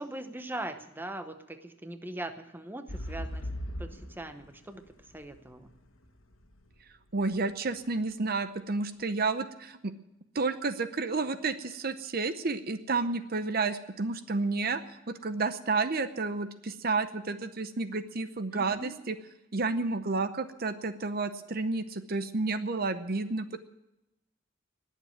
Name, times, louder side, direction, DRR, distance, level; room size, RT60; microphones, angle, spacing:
voice 1, 0.0-3.5 3.8-4.8 5.1-5.7 18.5-18.9, right 1 dB, 10° right, 8 dB, 0.9 m, -40 dB
sound 1, 2.9-6.8 7.3-7.4, equal, 85° left, 1.5 m, -39 dB
voice 2, 7.1-9.9 10.3-14.8 15.1-19.2 19.5-23.6, right 3 dB, 45° right, 11 dB, 0.7 m, -31 dB
20.0 x 7.5 x 9.0 m, 0.92 s
head